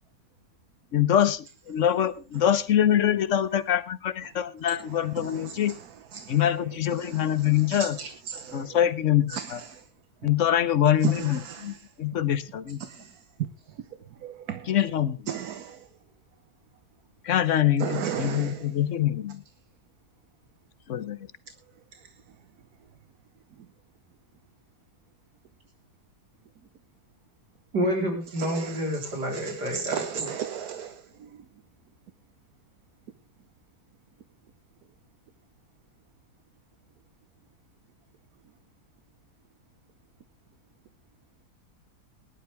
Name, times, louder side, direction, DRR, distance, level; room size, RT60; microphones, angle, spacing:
voice 1, 0.9-5.8 6.3-8.0 8.5-9.6 10.2-12.8 14.6-15.4 17.2-19.4 20.9-21.2, left 10 dB, 55° left, 15 dB, 1.1 m, -24 dB
voice 2, 7.7-8.7 9.3-9.4 11.0-11.1 11.4-11.6 12.9-13.0 14.2-14.6 15.3-15.8 17.8-18.6 28.5-28.7 29.3-30.9, right 9 dB, 70° right, 11 dB, 1.4 m, -33 dB
voice 3, 27.7-30.3, equal, 85° right, 2 dB, 4.6 m, -29 dB
19.0 x 11.5 x 3.4 m, 0.30 s
omnidirectional pair, 1.7 m